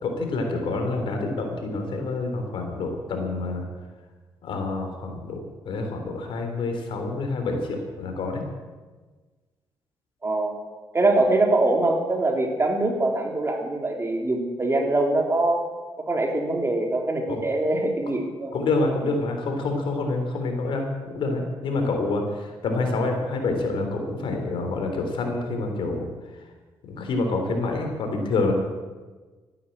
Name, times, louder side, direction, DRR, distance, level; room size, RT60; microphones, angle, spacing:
voice 1, 0.0-3.6 4.4-8.4 17.3-17.4 18.5-20.9 21.1-26.1 26.9-28.5, left 3 dB, 75° left, 4 dB, 3.7 m, -27 dB
voice 2, 10.2-10.6 10.9-15.6 16.0-18.5 19.0-19.1, right 2 dB, 30° right, 2 dB, 3.5 m, -23 dB
14.0 x 11.0 x 8.8 m, 1.3 s
cardioid pair, 75°, 9 cm